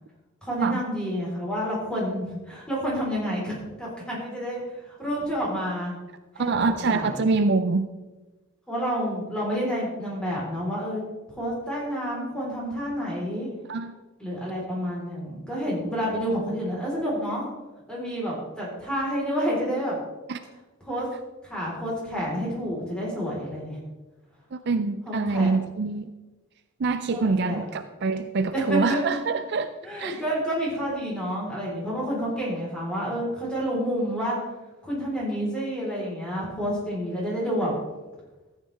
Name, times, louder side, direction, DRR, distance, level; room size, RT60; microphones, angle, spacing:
voice 1, 0.4-6.0 6.3-7.2 8.7-11.0 11.4-13.5 14.2-17.5 17.9-20.0 20.8-21.1 21.4-23.8 25.0-25.5 27.1-27.6 28.5-29.1 29.8-34.4 34.8-37.7, equal, 5° left, -5 dB, 4.0 m, -29 dB
voice 2, 6.4-7.9 13.7-13.9 20.3-20.4 24.5-26.1 26.8-29.7 30.0-30.2, right 4 dB, 50° right, 10 dB, 0.4 m, -25 dB
14.0 x 9.5 x 3.5 m, 1.1 s
head